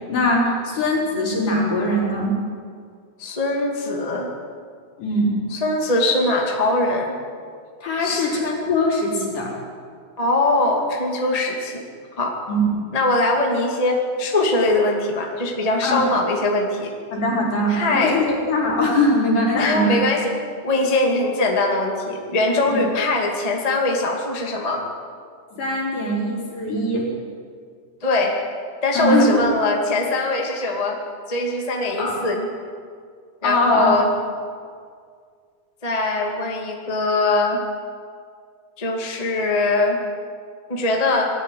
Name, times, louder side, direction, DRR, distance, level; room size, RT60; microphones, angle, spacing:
voice 1, 0.1-2.4 5.0-5.4 7.8-9.5 12.5-12.8 15.8-16.0 17.1-20.0 22.7-22.8 25.6-27.1 29.0-29.4 32.0-32.2 33.4-34.0, left 1 dB, 60° left, -3 dB, 5.7 m, -21 dB
voice 2, 3.2-4.3 5.5-7.2 8.0-8.2 10.2-11.9 12.1-12.3 12.9-16.9 17.7-18.2 19.5-20.2 20.6-24.8 28.0-28.3 28.8-31.0 31.3-32.5 33.4-34.1 35.8-37.6 38.8-40.0 40.7-41.3, left 2 dB, 15° left, 0 dB, 1.8 m, -21 dB
21.5 x 13.5 x 9.3 m, 2.1 s
omnidirectional pair, 4.2 m